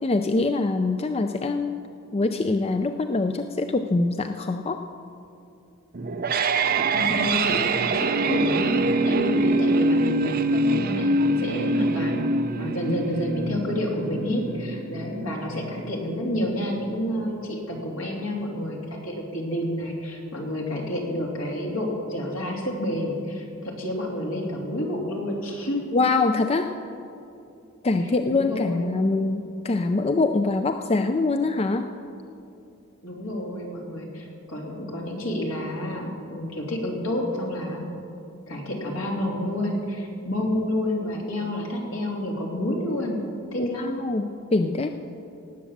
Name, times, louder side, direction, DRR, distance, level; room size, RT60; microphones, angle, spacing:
voice 1, 0.0-1.8 2.1-4.8 25.9-26.7 27.8-31.9 43.6-44.9, left 3 dB, 30° left, 7 dB, 0.4 m, -24 dB
sound 1, 5.9-16.9, right 2 dB, 45° right, 0.6 m, -25 dB
voice 2, 6.9-7.6 7.9-12.2 12.6-25.9 28.0-28.9 33.0-37.9 38.5-43.2 43.5-43.9, left 1 dB, 70° left, -1 dB, 2.9 m, -29 dB
18.0 x 8.6 x 7.2 m, 2.7 s
head